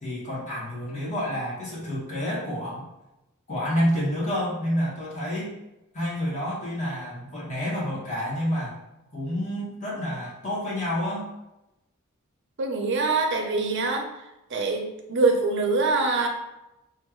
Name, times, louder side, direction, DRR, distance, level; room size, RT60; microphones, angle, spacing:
voice 1, 0.0-2.9 3.5-5.5 5.9-8.8 9.1-11.3, equal, 35° left, -7 dB, 1.4 m, -29 dB
voice 2, 12.6-14.1 14.5-16.3, right 3 dB, 55° right, 2 dB, 0.7 m, -24 dB
3.2 x 2.5 x 4.4 m, 0.94 s
head